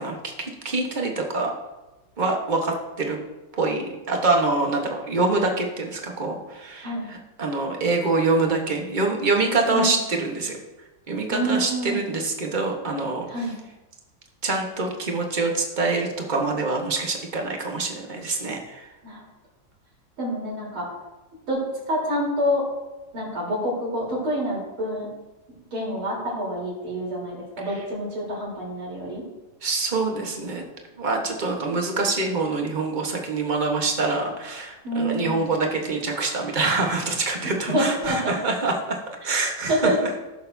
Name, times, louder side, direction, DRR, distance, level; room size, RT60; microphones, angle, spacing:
voice 1, 0.0-1.5 2.2-3.2 3.5-10.6 11.1-13.3 14.4-18.9 27.7-27.8 29.6-30.6 31.0-40.1, right 3 dB, 30° right, 1 dB, 1.1 m, -25 dB
voice 2, 11.3-12.0 13.3-13.5 19.0-19.2 20.2-20.9 21.5-22.7 23.1-25.1 25.7-29.2 34.8-35.4 37.7-38.3 39.7-40.0, equal, 75° right, -5 dB, 4.7 m, -27 dB
16.5 x 6.7 x 2.7 m, 1.1 s
omnidirectional pair, 2.3 m